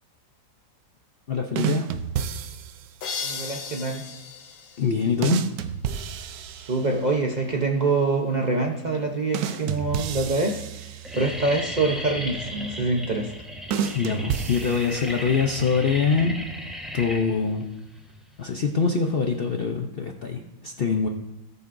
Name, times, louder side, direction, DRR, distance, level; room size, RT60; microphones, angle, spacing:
voice 1, 1.3-1.9 4.8-5.5 13.9-16.4 16.9-17.7 18.4-21.1, left 5 dB, 50° left, 3 dB, 0.7 m, -24 dB
sound 1, 1.6-3.0 5.2-7.2 9.3-11.5 13.7-15.3, right 8 dB, 75° right, 1.1 m, -30 dB
sound 2, 3.0-5.7, left 5 dB, 85° left, 1.6 m, -36 dB
voice 2, 3.2-4.0 6.6-13.3, right 3 dB, 35° right, 0 dB, 0.7 m, -25 dB
sound 3, 8.5-9.0 9.7-9.8 10.1-10.4 10.7-19.6, equal, ahead, 1.0 m, -36 dB
18.0 x 6.8 x 2.6 m, 0.95 s
omnidirectional pair, 1.7 m